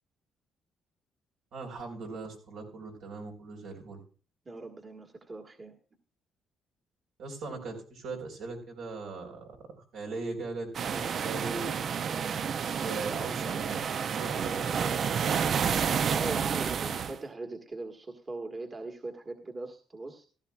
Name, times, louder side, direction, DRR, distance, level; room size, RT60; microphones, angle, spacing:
voice 1, 1.5-4.0 7.2-11.9 12.8-15.7, right 3 dB, 80° right, 2 dB, 4.0 m, -40 dB
voice 2, 4.4-5.7 16.1-20.3, right 2 dB, 35° right, 4 dB, 1.5 m, -40 dB
sound 1, 10.7-17.2, right 7 dB, 55° right, 0.5 m, -30 dB
15.5 x 13.0 x 2.4 m, 0.38 s
cardioid pair, 90°, 0 cm